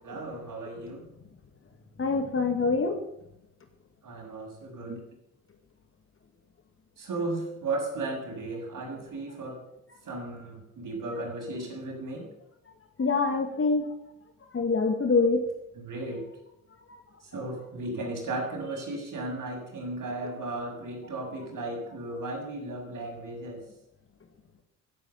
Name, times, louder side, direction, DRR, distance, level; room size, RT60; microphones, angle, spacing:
voice 1, 0.0-1.0 4.0-5.0 7.0-9.6 10.0-12.3 15.8-16.3 17.3-23.7, right 2 dB, 40° right, 1 dB, 7.0 m, -35 dB
voice 2, 2.0-3.0 13.0-13.9 14.5-15.4 16.9-17.0, left 4 dB, 25° left, 6 dB, 2.1 m, -25 dB
16.5 x 11.0 x 6.8 m, 0.81 s
figure-of-eight pair, 50°, 47 cm